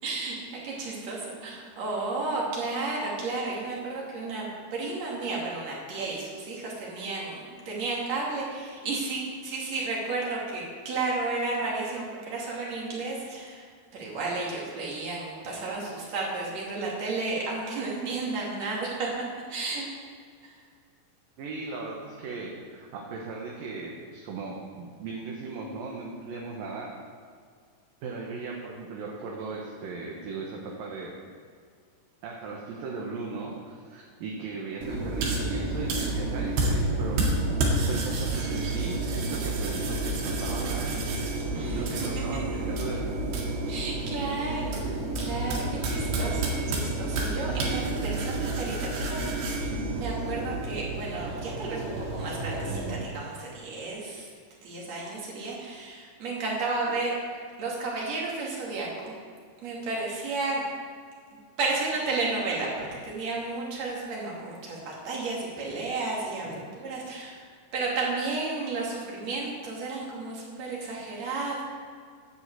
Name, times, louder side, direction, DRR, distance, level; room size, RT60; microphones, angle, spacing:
voice 1, 0.0-0.4 0.6-4.5 4.7-13.6 13.9-19.1 19.5-19.9 20.4-20.6 41.5-41.8 43.7-54.3 54.6-57.1 57.6-59.1 59.6-60.6 61.6-67.4 67.7-71.6, right 3 dB, 45° right, -4 dB, 3.5 m, -32 dB
voice 2, 21.4-26.9 28.0-31.2 32.2-37.4 37.9-43.1, right 3 dB, 65° right, -2 dB, 2.7 m, -37 dB
sound 1, 34.8-53.0, right 2 dB, 90° right, 4.2 m, -29 dB
11.0 x 8.0 x 8.2 m, 2.1 s
omnidirectional pair, 4.9 m